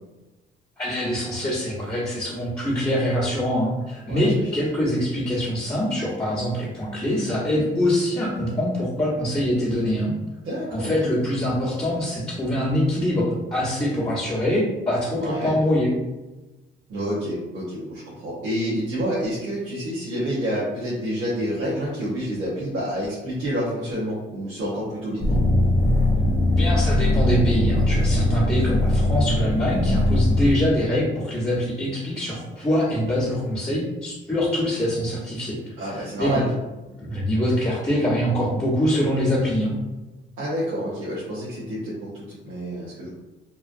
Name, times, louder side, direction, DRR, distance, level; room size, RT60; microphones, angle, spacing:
voice 1, 0.8-10.1 10.7-15.9 26.5-35.6 35.9-36.4 37.0-39.8, left 1 dB, 15° left, -11 dB, 1.0 m, -24 dB
voice 2, 4.1-4.6 10.4-11.1 15.2-15.5 16.9-25.3 35.8-36.5 40.4-43.1, equal, 90° right, -10 dB, 1.0 m, -28 dB
sound 1, 25.2-30.5, left 1 dB, 40° left, 0.7 m, -20 dB
3.1 x 2.3 x 2.5 m, 1.1 s
cardioid pair, 90°, 20 cm